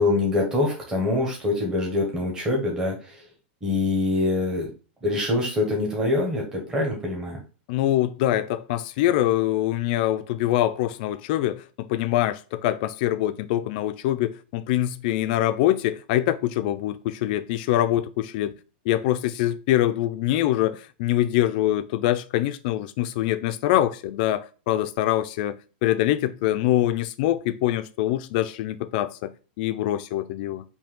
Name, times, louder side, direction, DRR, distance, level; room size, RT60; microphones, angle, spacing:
voice 1, 0.0-3.2 3.6-4.7 5.0-7.4, left 2 dB, 10° right, 1.3 m, -24 dB
voice 2, 7.7-18.5 18.9-25.6 25.8-29.3 29.6-30.6, left 13 dB, 50° left, 0.4 m, -24 dB
4.6 x 2.8 x 3.7 m
supercardioid pair, 155°, 6 cm